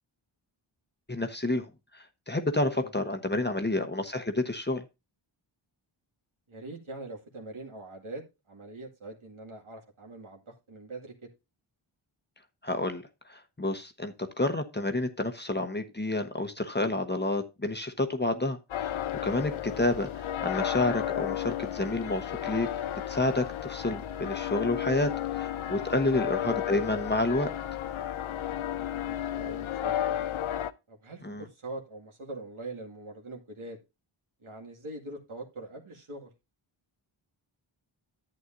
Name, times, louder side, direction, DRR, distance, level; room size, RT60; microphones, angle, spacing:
voice 1, 1.1-1.7 1.9-4.8 12.6-18.9 19.2-22.7 23.1-27.5 31.2-31.4, left 2 dB, 20° left, 6 dB, 1.1 m, -29 dB
voice 2, 6.5-11.3 26.0-26.2 28.9-30.2 30.9-33.8 34.4-36.3, right 2 dB, 75° right, 1 dB, 2.3 m, -43 dB
sound 1, 18.7-30.7, left 11 dB, 75° left, 0.6 m, -33 dB
11.0 x 8.2 x 2.6 m, 0.25 s
wide cardioid pair, 55°, 50 cm